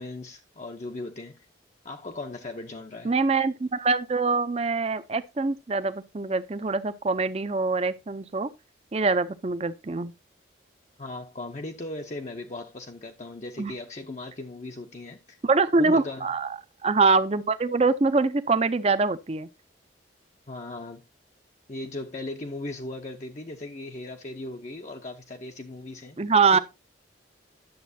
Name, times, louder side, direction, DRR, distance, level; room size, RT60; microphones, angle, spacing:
voice 1, 0.0-1.4 1.8-3.1 11.0-15.4 15.8-16.3 20.5-21.0 21.7-26.2 26.5-26.6, left 2 dB, 40° left, 0.6 m, -37 dB
voice 2, 3.0-8.5 8.9-10.1 13.6-13.7 15.4-16.6 16.8-19.5 26.2-26.6, right 4 dB, 30° right, 0.5 m, -24 dB
10.5 x 7.1 x 2.7 m
head